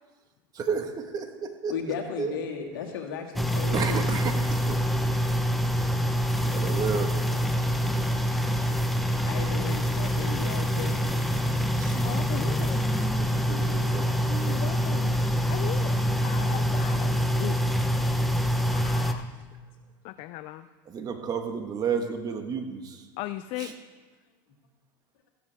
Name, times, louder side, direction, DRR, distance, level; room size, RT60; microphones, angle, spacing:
voice 1, 0.5-1.7 2.2-2.3 3.7-4.8 6.5-7.1 11.7-12.1 13.2-14.6 20.9-23.1 23.6-23.7, right 6 dB, 35° right, 5 dB, 1.6 m, -32 dB
voice 2, 1.7-4.1 9.3-11.2 15.6-16.4 24.5-24.6, left 7 dB, 90° left, 1 dB, 2.2 m, -36 dB
sound 1, 3.4-19.1, equal, ahead, 0.9 m, -26 dB
voice 3, 5.2-5.7 6.4-6.7 7.3-8.4 10.3-10.4 11.3-11.7 12.0-12.8 14.4-15.2 15.5-16.0 16.2-17.6 18.7-19.5 20.0-20.7 23.2-23.7, left 16 dB, 55° left, 12 dB, 0.5 m, -39 dB
14.5 x 12.5 x 3.6 m, 1.3 s
supercardioid pair, 120°, 11 cm